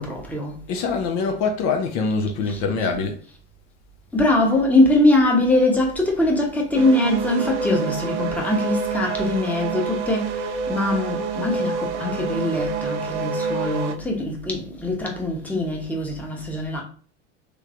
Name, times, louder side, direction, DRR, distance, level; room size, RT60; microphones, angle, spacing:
voice 1, 0.0-0.6 2.5-2.6 4.1-16.8, left 1 dB, 5° left, 0.9 m, -22 dB
voice 2, 0.7-3.2, left 4 dB, 50° left, 0.7 m, -24 dB
sound 1, 6.7-13.9, right 4 dB, 80° right, 0.6 m, -27 dB
3.2 x 3.1 x 2.5 m
hypercardioid pair, 90°, 35 cm